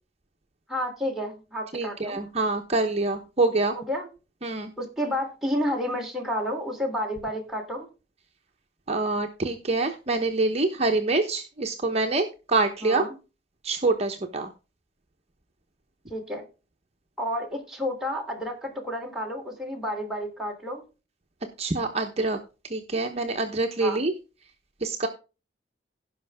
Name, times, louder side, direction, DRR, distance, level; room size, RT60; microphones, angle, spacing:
voice 1, 0.7-2.2 3.7-4.1 4.8-7.9 12.8-13.1 16.1-16.4 17.2-20.8 23.8-24.0, equal, ahead, -1 dB, 3.4 m, -30 dB
voice 2, 1.7-3.8 4.4-4.7 8.9-13.1 13.6-14.5 21.6-22.4 22.7-24.1 24.8-25.1, right 3 dB, 35° right, 3 dB, 1.1 m, -26 dB
17.0 x 5.7 x 3.6 m, 0.31 s
head